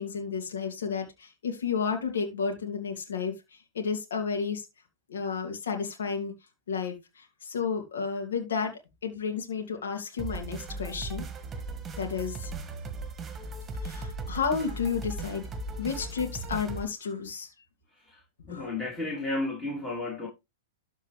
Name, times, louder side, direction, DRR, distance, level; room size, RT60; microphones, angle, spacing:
voice 1, 0.0-3.3 3.7-4.7 5.1-6.3 6.7-11.2 12.0-12.5 13.8-15.4 15.8-17.5 18.5-18.7, left 6 dB, 75° left, 2.7 m, -32 dB
sound 1, 10.2-16.8, right 3 dB, 20° right, 1.7 m, -37 dB
voice 2, 18.5-20.3, left 2 dB, 15° left, 3.3 m, -32 dB
13.0 x 4.5 x 3.3 m
hypercardioid pair, 115°, 0 cm